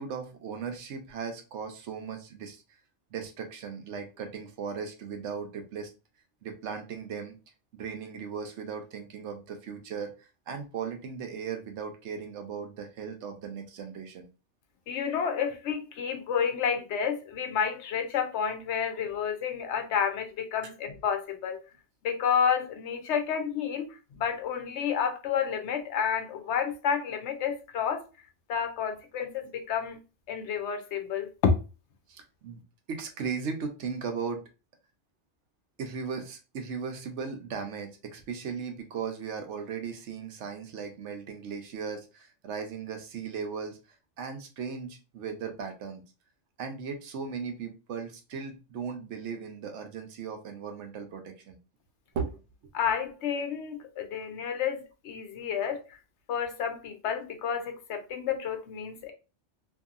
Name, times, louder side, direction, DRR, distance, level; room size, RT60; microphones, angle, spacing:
voice 1, 0.0-2.6 3.1-5.9 6.4-7.4 7.7-10.1 10.5-14.3 20.6-20.7 32.1-32.6 32.9-34.4 35.8-43.8 44.2-46.0 46.6-51.6 52.1-52.4, right 6 dB, 80° right, 1.0 m, -37 dB
voice 2, 14.9-21.6 22.0-23.9 24.2-28.0 28.5-30.0 30.3-31.5 52.7-55.8 56.3-59.1, left 7 dB, 75° left, 0.9 m, -30 dB
2.7 x 2.6 x 2.4 m
omnidirectional pair, 1.2 m